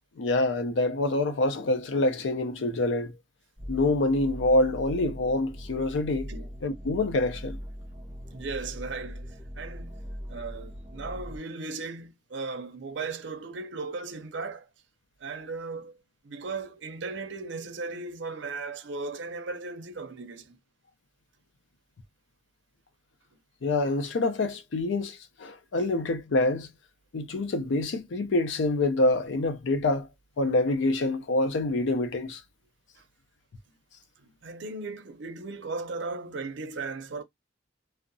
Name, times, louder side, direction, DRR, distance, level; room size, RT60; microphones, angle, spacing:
voice 1, 0.2-3.1 3.7-6.3 6.6-7.6 23.6-26.7 27.1-30.1 30.4-32.4, left 2 dB, 80° left, 0.5 m, -26 dB
sound 1, 3.6-11.4, equal, 15° right, 0.9 m, -40 dB
voice 2, 8.3-10.0 10.3-14.7 15.2-16.0 16.2-20.6 34.2-37.2, right 3 dB, 70° right, 0.5 m, -37 dB
2.7 x 2.0 x 2.6 m
head